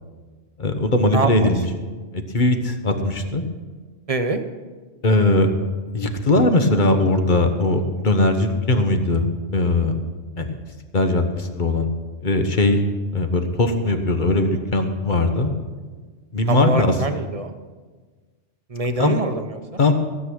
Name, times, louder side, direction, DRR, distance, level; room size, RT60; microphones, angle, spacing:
voice 1, 0.6-1.7 2.1-3.4 5.0-5.5 5.9-9.3 9.5-10.0 10.4-10.5 10.9-11.9 12.2-12.8 13.1-15.5 16.3-16.9 19.0-19.1 19.8-19.9, left 2 dB, 40° left, 6 dB, 1.3 m, -19 dB
voice 2, 1.1-1.5 4.1-4.4 16.5-17.5 18.7-19.8, right 2 dB, 35° right, 7 dB, 0.8 m, -24 dB
16.0 x 8.1 x 6.3 m, 1.4 s
omnidirectional pair, 1.3 m